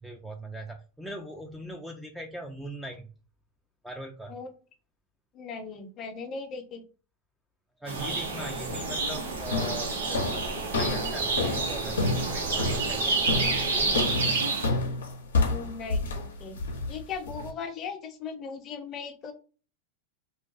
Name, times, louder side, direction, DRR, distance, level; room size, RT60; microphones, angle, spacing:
voice 1, 0.0-3.1 3.8-4.4 7.8-10.2 10.7-13.2 13.7-14.4, right 1 dB, ahead, 2 dB, 0.3 m, -40 dB
voice 2, 5.3-6.8 15.5-16.6 16.9-19.3, left 5 dB, 35° left, 6 dB, 0.6 m, -38 dB
sound 1, 7.9-14.7, right 3 dB, 90° right, 0.7 m, -29 dB
sound 2, 8.0-14.0, right 2 dB, 35° right, 0.7 m, -39 dB
sound 3, 8.7-9.0 9.5-17.5, left 3 dB, 90° left, 0.6 m, -30 dB
2.3 x 2.2 x 2.4 m, 0.36 s
hypercardioid pair, 115°, 0 cm